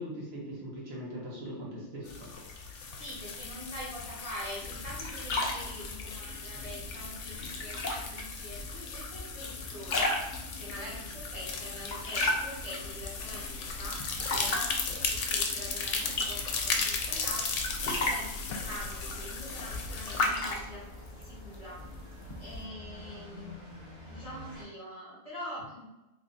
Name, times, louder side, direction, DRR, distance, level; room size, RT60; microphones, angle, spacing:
voice 1, 0.0-2.3 6.5-6.6, equal, 60° right, -5 dB, 1.1 m, -40 dB
sound 1, 2.1-20.3, left 4 dB, 75° left, 0.9 m, -36 dB
voice 2, 3.0-14.8 15.1-17.5 17.8-20.9 21.2-21.8 22.4-23.6 24.0-25.9, equal, 30° left, -7 dB, 1.0 m, -44 dB
sound 2, 4.6-22.6, left 2 dB, 50° left, 0.6 m, -37 dB
sound 3, 17.0-24.6, equal, 25° right, 1.1 m, -49 dB
3.2 x 2.3 x 3.9 m, 0.97 s
omnidirectional pair, 1.3 m